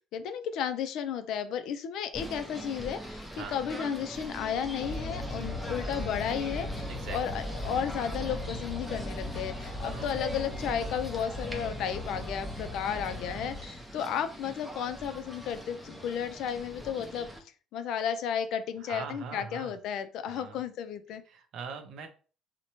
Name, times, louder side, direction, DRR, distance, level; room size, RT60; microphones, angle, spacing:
voice 1, 0.1-6.7 7.1-17.3 17.7-21.2, left 8 dB, 65° left, 10 dB, 0.3 m, -33 dB
Singing / Bird, 2.1-17.4, equal, 5° right, 0.5 m, -42 dB
voice 2, 3.3-3.6 6.9-7.2 9.8-10.1 18.8-19.8 20.3-20.6 21.3-22.1, right 6 dB, 60° right, 7 dB, 0.5 m, -41 dB
sound 1, 4.8-14.0, left 1 dB, 30° left, 1.0 m, -38 dB
2.7 x 2.1 x 2.9 m, 0.38 s
cardioid pair, 145°, 0 cm